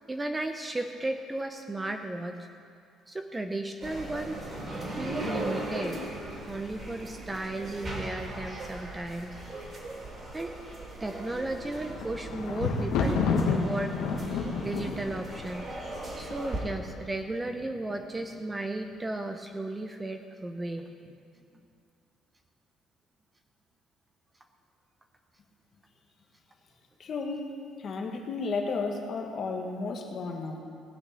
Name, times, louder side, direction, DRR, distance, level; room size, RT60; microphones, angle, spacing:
voice 1, 0.1-2.4 3.1-4.4 5.0-6.0 6.4-9.3 10.3-10.5 11.0-13.3 13.5-14.0 14.6-15.7 16.2-21.1, right 2 dB, 10° right, 5 dB, 0.6 m, -34 dB
sound 1, 3.8-16.6, right 1 dB, 25° right, 2.7 m, -38 dB
Thunder, 11.6-16.7 17.4-18.0 18.2-18.3, left 4 dB, 80° left, 1.6 m, -30 dB
voice 2, 27.0-27.5 27.8-30.6, left 4 dB, 35° left, 2 dB, 1.5 m, -33 dB
18.5 x 6.4 x 8.7 m, 2.4 s
cardioid pair, 170°, 0 cm